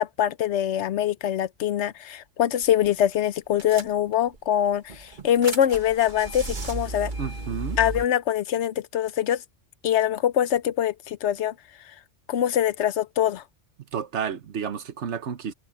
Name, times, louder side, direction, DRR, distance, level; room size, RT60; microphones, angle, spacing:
voice 1, 0.0-7.1 7.8-9.4 9.8-11.5 12.3-13.4, left 11 dB, 80° left, 1.0 m, -24 dB
sound 1, 2.6-2.9 3.1-3.2 3.6-4.4 4.9-8.0, right 2 dB, 45° right, 1.7 m, -34 dB
voice 2, 7.2-7.8 13.9-15.5, right 7 dB, 85° right, 1.3 m, -31 dB
omnidirectional pair, 1.1 m